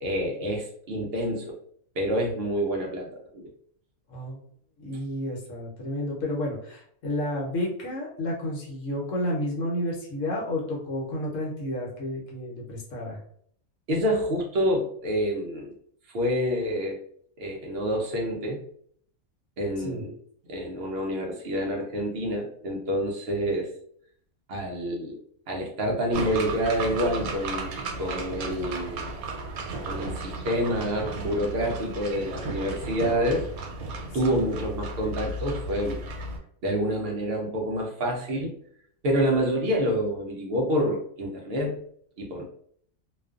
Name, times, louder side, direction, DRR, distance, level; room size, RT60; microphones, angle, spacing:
voice 1, 0.0-1.6 2.0-3.5 13.9-15.7 16.1-17.0 17.4-18.6 19.6-20.1 20.5-23.7 24.5-25.2 25.5-27.7 28.0-29.1 29.9-33.4 34.1-36.0 36.6-38.5 39.0-41.8 42.2-42.5, equal, 65° right, 0 dB, 0.6 m, -27 dB
voice 2, 4.1-4.4 4.8-13.2 19.8-20.0 34.0-34.5, left 1 dB, 65° left, -2 dB, 1.1 m, -31 dB
sound 1, 26.1-36.4, right 2 dB, 85° right, 1.1 m, -34 dB
2.4 x 2.3 x 2.3 m, 0.63 s
omnidirectional pair, 1.5 m